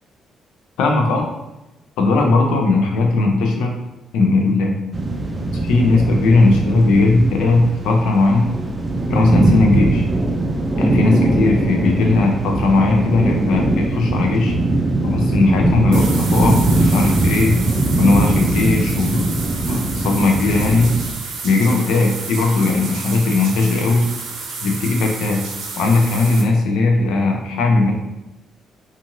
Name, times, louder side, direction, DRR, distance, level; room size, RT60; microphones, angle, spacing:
voice 1, 0.8-1.3 2.0-3.8 4.1-4.8 5.6-8.6 9.1-10.0 10.8-14.5 15.0-17.6 18.0-19.4 19.7-20.9 21.4-24.1 24.6-25.4 25.8-27.9, left 3 dB, 90° left, 2 dB, 0.5 m, -17 dB
sound 1, 4.9-21.1, right 2 dB, 25° right, 0.4 m, -20 dB
sound 2, 15.9-26.4, right 4 dB, 85° right, 0.6 m, -31 dB
2.9 x 2.5 x 2.6 m, 0.97 s
cardioid pair, 90°, 0 cm